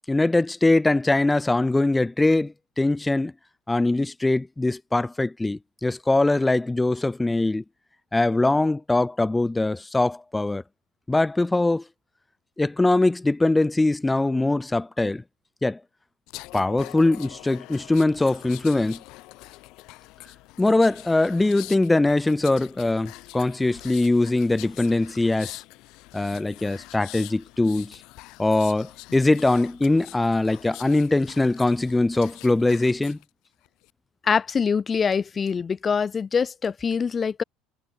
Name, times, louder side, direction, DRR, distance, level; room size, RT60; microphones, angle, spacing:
voice 1, 0.1-3.3 3.7-7.6 8.1-10.6 11.1-11.8 12.6-15.2 15.6-15.8 16.5-19.0 20.6-25.6 26.1-28.0 28.4-33.2, left 2 dB, 10° left, 0.4 m, -22 dB
sound 1, 16.3-33.2 33.6-33.9, left 21 dB, 65° left, 2.4 m, -44 dB
voice 2, 34.2-37.4, left 6 dB, 25° left, 0.9 m, -24 dB
cardioid pair, 135°, 0 cm